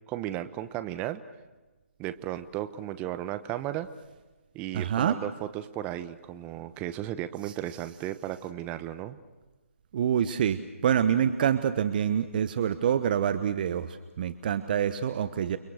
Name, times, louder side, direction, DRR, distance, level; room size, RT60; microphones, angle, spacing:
voice 1, 0.1-1.2 2.0-3.9 4.5-9.2, right 13 dB, 20° right, 11 dB, 1.0 m, -35 dB
voice 2, 4.7-5.2 9.9-15.6, right 9 dB, 40° right, 12 dB, 1.2 m, -26 dB
30.0 x 24.0 x 6.5 m, 1.2 s
figure-of-eight pair, 145°, 7 cm